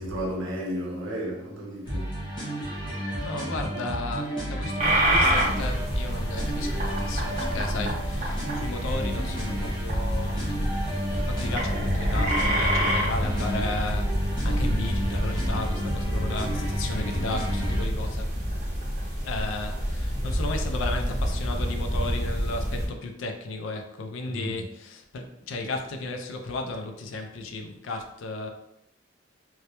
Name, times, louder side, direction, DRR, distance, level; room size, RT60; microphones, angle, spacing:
voice 1, 0.0-2.2 24.2-24.5, equal, 75° right, 0.7 m, -33 dB
sound 1, 1.9-17.9, equal, 25° left, 0.7 m, -31 dB
voice 2, 3.2-10.7 11.2-18.4 19.2-28.5, left 2 dB, 75° left, 0.4 m, -34 dB
sound 2, 4.8-22.9, equal, 35° right, 0.6 m, -28 dB
2.2 x 2.1 x 2.8 m
head